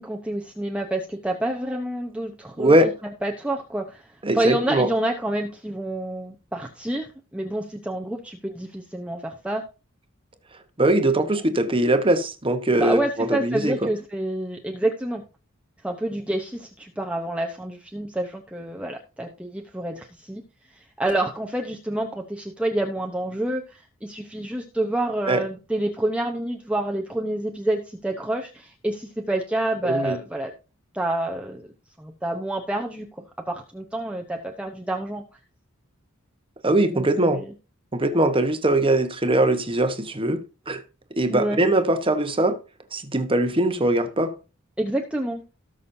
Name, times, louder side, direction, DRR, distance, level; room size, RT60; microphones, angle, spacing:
voice 1, 0.0-2.8 3.2-7.1 7.3-9.6 12.8-15.2 15.8-20.4 20.8-30.5 30.9-31.6 32.0-35.2 36.9-37.5 41.3-41.6 44.8-45.4, right 1 dB, 5° right, 0.9 m, -28 dB
voice 2, 2.6-2.9 4.2-4.9 10.8-13.9 25.3-25.4 29.8-30.2 36.6-37.4 37.9-40.4 40.7-40.8 41.2-42.6 42.9-44.3, right 1 dB, 25° right, 1.1 m, -21 dB
18.5 x 6.3 x 2.7 m
head